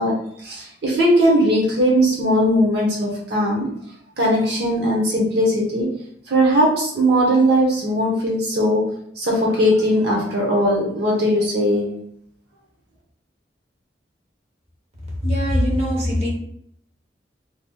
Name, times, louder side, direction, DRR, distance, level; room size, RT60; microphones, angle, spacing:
voice 1, 0.0-3.7 4.2-5.9 6.3-8.9 9.2-11.9, equal, 65° right, -3 dB, 0.8 m, -19 dB
voice 2, 15.2-16.3, equal, 35° right, -3 dB, 1.0 m, -21 dB
3.1 x 2.7 x 2.2 m, 0.69 s
head